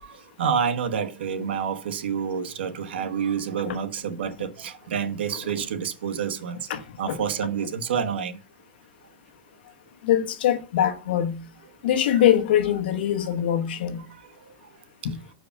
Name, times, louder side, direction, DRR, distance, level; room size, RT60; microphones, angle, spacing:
voice 1, 0.0-6.6 7.0-8.4, right 7 dB, 85° right, 1.1 m, -28 dB
voice 2, 6.7-7.2 10.0-11.5 11.8-14.0 15.0-15.2, left 10 dB, 70° left, 1.1 m, -23 dB
6.9 x 4.8 x 5.7 m
supercardioid pair, 150°, 6 cm